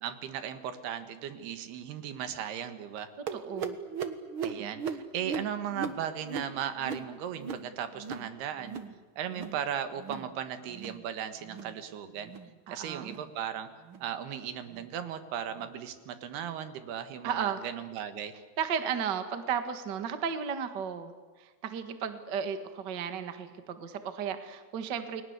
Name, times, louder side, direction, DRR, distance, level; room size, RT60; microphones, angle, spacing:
voice 1, 0.0-3.1 4.4-8.8 9.2-12.3 12.7-13.7 14.0-18.3, right 9 dB, 80° right, 10 dB, 3.6 m, -37 dB
voice 2, 3.3-3.8 4.6-4.7 12.7-13.1 17.2-17.6 18.6-21.1 21.4-25.2, right 7 dB, 45° right, 9 dB, 1.5 m, -34 dB
sound 1, 3.3-8.3 8.6-9.0 9.2-9.6 9.9-10.3 10.7-11.0 11.4-11.8 12.2-12.5 13.0-13.3 13.8-14.1 14.7-14.9 15.6-15.7 16.4-16.5, right 6 dB, 60° right, 1.3 m, -38 dB
30.0 x 21.5 x 8.2 m, 1.3 s
omnidirectional pair, 4.5 m